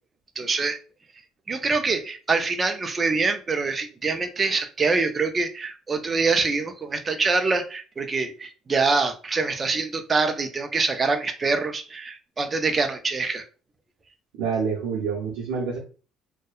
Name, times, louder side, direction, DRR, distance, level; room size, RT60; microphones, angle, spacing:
voice 1, 0.4-0.8 1.5-13.4, right 4 dB, 25° right, 6 dB, 0.4 m, -25 dB
voice 2, 14.4-15.8, right 5 dB, 85° right, -7 dB, 0.7 m, -27 dB
2.7 x 2.1 x 2.3 m, 0.37 s
cardioid pair, 120°, 0 cm